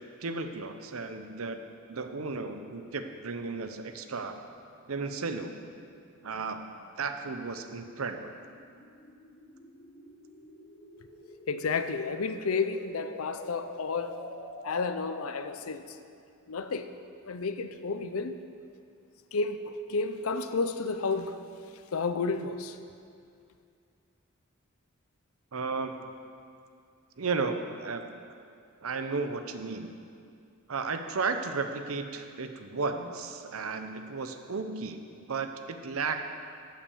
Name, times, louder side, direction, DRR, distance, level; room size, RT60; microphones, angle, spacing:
voice 1, 0.2-1.6 1.9-4.4 4.9-5.5 6.2-6.6 7.0-8.3 25.5-26.1 27.2-28.0 28.8-29.9 30.7-35.0 35.3-36.3, right 4 dB, 80° right, 7 dB, 0.8 m, -34 dB
sound 1, 4.6-15.7, left 1 dB, 45° left, 1.1 m, -48 dB
voice 2, 11.5-14.2 14.6-15.8 16.5-16.9 17.3-18.4 19.3-19.6 19.9-21.4 21.9-22.8, left 4 dB, 80° left, 9 dB, 0.6 m, -31 dB
11.5 x 5.8 x 7.1 m, 2.4 s
head